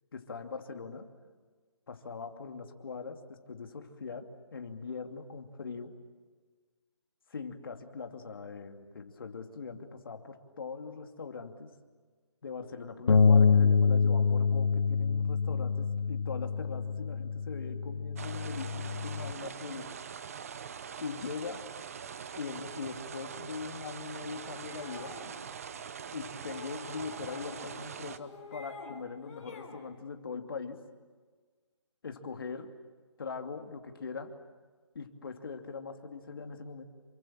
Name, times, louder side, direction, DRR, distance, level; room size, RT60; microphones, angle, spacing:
voice 1, 0.1-1.1 1.9-6.0 7.3-11.7 12.4-19.9 21.0-21.6 22.4-25.2 26.1-30.8 32.0-32.7 33.2-34.3 34.9-36.8, left 5 dB, 50° left, 5 dB, 2.6 m, -41 dB
Bass guitar, 13.1-19.3, left 5 dB, 65° left, 1.8 m, -26 dB
sound 1, 18.2-28.2, right 7 dB, 30° right, 0.9 m, -43 dB
sound 2, 24.3-25.4 26.3-27.7 28.0-28.9 29.2-29.8, left 4 dB, 30° left, 4.6 m, -48 dB
28.5 x 25.0 x 7.5 m, 1.5 s
hypercardioid pair, 165°, 16 cm